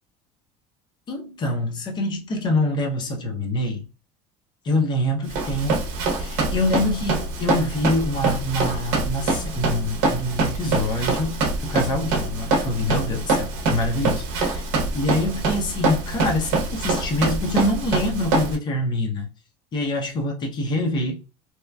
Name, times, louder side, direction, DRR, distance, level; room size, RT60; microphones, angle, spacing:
voice 1, 1.1-3.8 4.6-5.8 6.1-14.6 14.9-19.3 19.7-21.2, left 1 dB, 30° left, 0.7 m, -25 dB
Run, 5.3-18.5, right 3 dB, 70° right, 0.8 m, -25 dB
2.8 x 2.3 x 2.2 m
cardioid pair, 150°, 15 cm